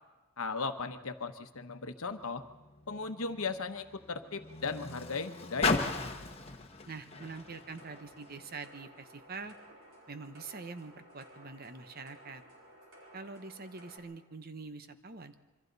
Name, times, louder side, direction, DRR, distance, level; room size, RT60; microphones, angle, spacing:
voice 1, 0.4-2.4 2.9-6.2, left 4 dB, 75° left, 8 dB, 1.1 m, -37 dB
Car, 2.0-8.6 9.4-9.5, left 4 dB, 25° left, 1.1 m, -38 dB
voice 2, 6.9-9.5 10.1-12.4 13.1-15.3, right 4 dB, 45° right, 10 dB, 0.9 m, -45 dB
sound 1, 7.1-14.0, right 1 dB, 60° right, 4.7 m, -56 dB
26.5 x 24.0 x 4.1 m, 1.2 s
head